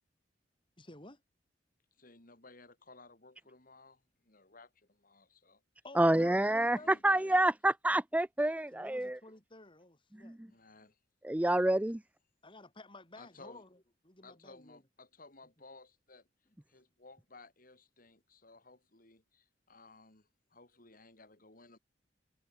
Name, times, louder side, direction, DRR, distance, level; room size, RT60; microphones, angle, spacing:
voice 1, 0.8-1.2 5.8-7.0 8.7-10.4 12.4-14.8, left 2 dB, 30° left, 7.6 m, -53 dB
voice 2, 2.0-5.6 6.4-7.4 10.5-11.0 13.1-13.6 14.2-16.3 16.7-21.8, left 3 dB, 50° left, 4.5 m, -57 dB
voice 3, 6.0-6.8 7.0-9.2 10.2-10.3 11.2-12.0, right 1 dB, 10° right, 0.6 m, -28 dB
head